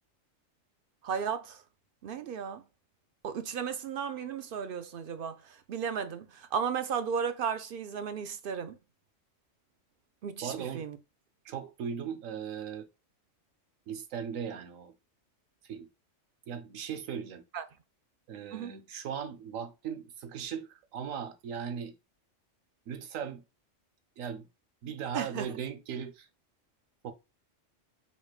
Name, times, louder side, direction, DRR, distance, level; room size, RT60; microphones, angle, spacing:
voice 1, 1.0-1.6 2.0-2.6 3.2-8.8 10.2-11.0 17.5-17.6 18.5-18.7 25.1-25.5, right 7 dB, 60° right, 0.6 m, -34 dB
voice 2, 10.4-10.8 11.4-12.9 13.9-14.9 15.6-15.9 16.5-17.4 18.3-21.9 22.9-23.4 24.2-24.5 24.8-26.3 27.0-27.1, right 7 dB, 85° right, 1.1 m, -38 dB
4.4 x 4.2 x 2.3 m
omnidirectional pair, 1.3 m